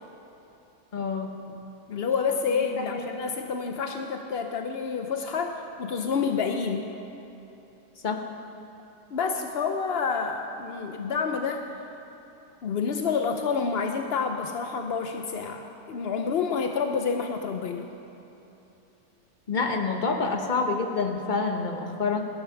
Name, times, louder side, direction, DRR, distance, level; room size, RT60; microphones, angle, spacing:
voice 1, 0.9-1.3 2.8-3.0 8.0-8.2 19.5-22.2, left 4 dB, 30° left, 3 dB, 1.1 m, -27 dB
voice 2, 1.9-6.9 9.1-11.7 12.6-17.9, left 5 dB, 65° left, 5 dB, 0.6 m, -28 dB
19.0 x 11.0 x 5.9 m, 3.0 s
omnidirectional pair, 1.9 m